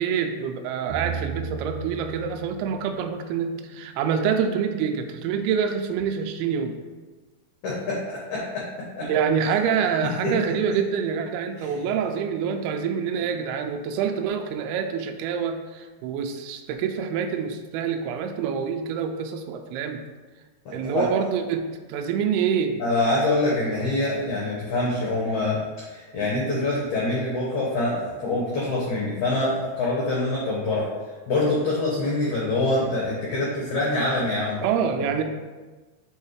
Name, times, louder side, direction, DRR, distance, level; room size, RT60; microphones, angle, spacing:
voice 1, 0.0-6.8 9.0-20.0 20.7-21.6 21.9-22.8 34.6-35.2, right 7 dB, 90° right, 5 dB, 2.2 m, -26 dB
sound 1, 0.9-4.0, right 6 dB, 75° right, 1.9 m, -35 dB
voice 2, 7.6-8.6 9.0-9.1 10.2-10.3 11.6-11.7 20.6-21.0 22.8-25.6 25.9-30.9 31.3-34.6 35.0-35.1, left 2 dB, 80° left, -4 dB, 1.7 m, -25 dB
6.7 x 5.5 x 3.2 m, 1.3 s
omnidirectional pair, 5.1 m